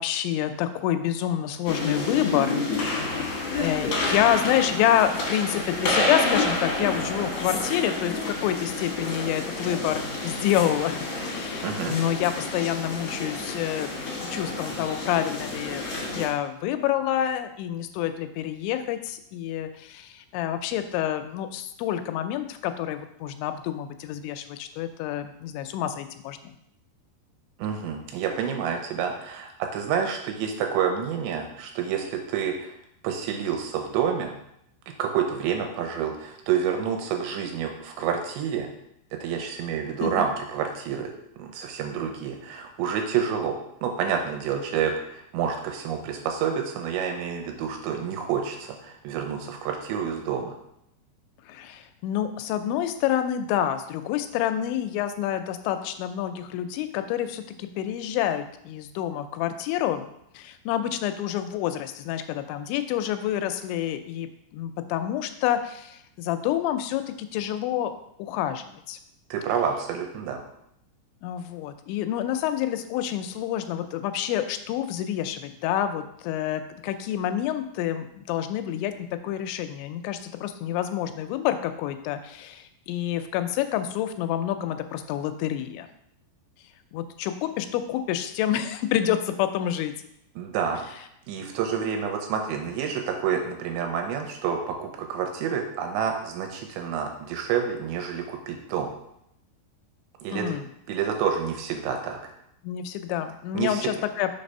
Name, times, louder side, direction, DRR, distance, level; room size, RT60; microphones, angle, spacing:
voice 1, 0.0-2.6 2.9-26.5 40.0-40.1 51.5-60.1 60.3-67.9 68.2-69.0 71.2-78.9 79.2-85.9 86.9-89.9 100.3-100.7 102.6-104.3, left 11 dB, 90° left, 9 dB, 2.9 m, -28 dB
sound 1, 1.6-16.3, left 2 dB, 65° left, 1.5 m, -29 dB
voice 2, 11.6-12.0 27.6-32.7 33.0-34.3 35.0-38.7 39.1-41.1 41.4-50.6 69.3-70.4 90.4-90.8 91.3-98.9 100.2-100.5 100.9-102.2 103.5-103.9, right 7 dB, 85° right, 3 dB, 3.0 m, -28 dB
6.4 x 3.3 x 5.3 m, 0.77 s
omnidirectional pair, 5.1 m